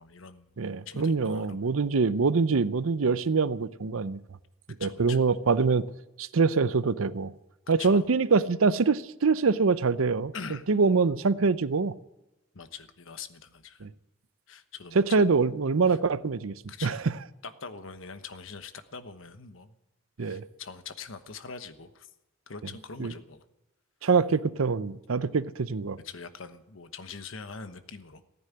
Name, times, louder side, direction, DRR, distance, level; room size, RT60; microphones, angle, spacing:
voice 1, 0.0-0.5 0.9-1.7 4.8-5.2 7.8-8.1 10.3-10.7 12.5-13.8 14.5-15.2 15.9-16.0 16.7-17.1 17.4-19.7 20.2-22.1 22.5-23.4 26.0-28.2, left 5 dB, 75° left, 1.1 m, -43 dB
voice 2, 0.6-4.2 4.8-5.9 6.2-7.3 7.7-10.3 10.7-11.9 13.8-13.9 15.0-16.5 16.8-17.0 20.2-20.4 23.0-23.1 24.0-26.0, right 4 dB, 90° right, 0.6 m, -24 dB
15.0 x 9.6 x 9.7 m
head